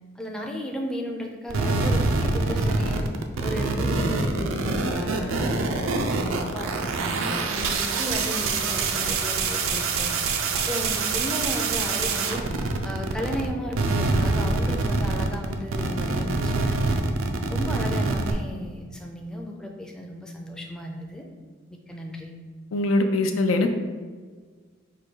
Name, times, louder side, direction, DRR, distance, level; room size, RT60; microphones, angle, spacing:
voice 1, 0.2-3.1 3.4-10.2 10.5-12.4 12.8-17.0 17.5-21.2 21.9-22.3, equal, 5° left, 0 dB, 0.4 m, -35 dB
sound 1, 1.5-13.5 13.7-18.3, right 3 dB, 80° right, 0.4 m, -25 dB
voice 2, 22.7-23.7, left 2 dB, 85° left, 5 dB, 0.5 m, -22 dB
4.8 x 2.3 x 4.5 m, 1.5 s
head